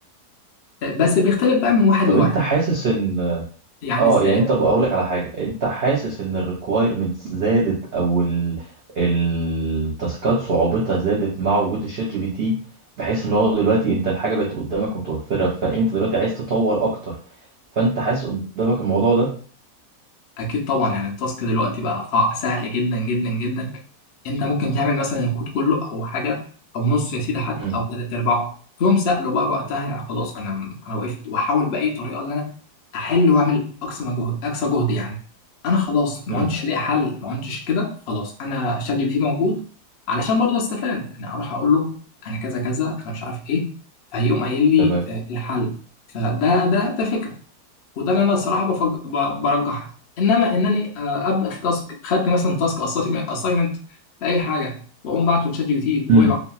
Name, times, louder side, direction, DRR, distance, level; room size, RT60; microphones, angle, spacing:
voice 1, 0.8-2.3 3.8-4.5 20.4-23.7 24.2-26.4 26.7-28.5 28.8-32.5 32.9-35.2 35.6-39.7 40.1-43.7 44.1-45.8 46.1-47.3 48.0-49.9 50.2-53.8 54.2-54.8 55.0-56.4, left 3 dB, 60° left, 0 dB, 0.6 m, -22 dB
voice 2, 2.1-3.4 4.0-8.7 9.0-12.5 13.0-17.1 17.7-19.3 27.6-27.8 36.3-36.5 44.8-45.0 56.1-56.3, right 3 dB, 85° right, -3 dB, 0.5 m, -21 dB
2.9 x 2.6 x 2.2 m, 0.42 s
omnidirectional pair, 1.7 m